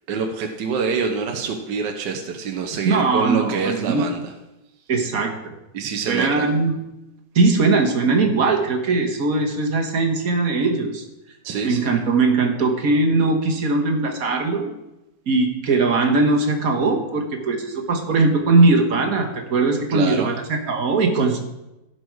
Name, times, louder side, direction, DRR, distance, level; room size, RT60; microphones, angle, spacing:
voice 1, 0.1-4.2 5.7-6.3 11.4-11.9 19.9-20.3, right 5 dB, 75° right, 3 dB, 1.5 m, -26 dB
voice 2, 2.8-4.1 4.9-5.3 6.1-6.8 7.3-11.0 11.6-14.7 15.3-21.4, right 3 dB, 55° right, 3 dB, 1.7 m, -20 dB
15.5 x 6.1 x 4.7 m, 0.96 s
omnidirectional pair, 1.9 m